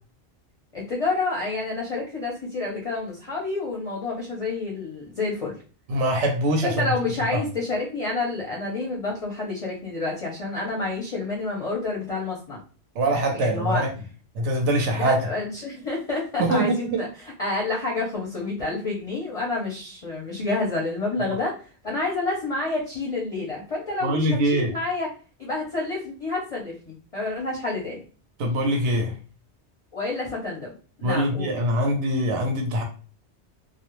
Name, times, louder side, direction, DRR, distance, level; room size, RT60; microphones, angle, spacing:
voice 1, 0.7-5.5 6.6-12.6 13.3-13.8 15.0-21.5 21.8-25.1 25.4-28.0 29.9-30.7 31.0-31.5, left 3 dB, 40° left, -3 dB, 0.5 m, -29 dB
voice 2, 5.9-6.9 7.3-7.4 13.0-13.9 14.3-15.3 16.4-17.0 24.0-24.7 28.4-29.1 31.0-32.8, right 1 dB, 80° right, 2 dB, 0.9 m, -23 dB
2.3 x 2.1 x 2.9 m, 0.38 s
omnidirectional pair, 1.2 m